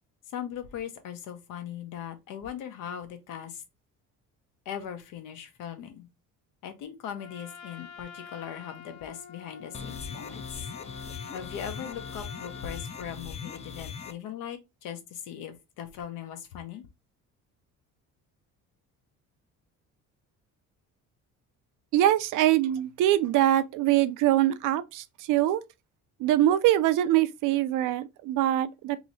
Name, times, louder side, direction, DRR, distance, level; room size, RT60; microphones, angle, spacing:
voice 1, 0.3-3.6 4.6-6.1 6.6-10.7 11.3-16.8, left 9 dB, 85° left, 1.0 m, -39 dB
Trumpet, 7.1-12.9, left 6 dB, 60° left, 0.8 m, -47 dB
sound 1, 9.7-14.1, left 6 dB, 20° left, 0.4 m, -40 dB
voice 2, 21.9-25.6 26.2-29.0, right 13 dB, 75° right, 0.5 m, -23 dB
3.1 x 3.0 x 3.9 m
cardioid pair, 135°, 31 cm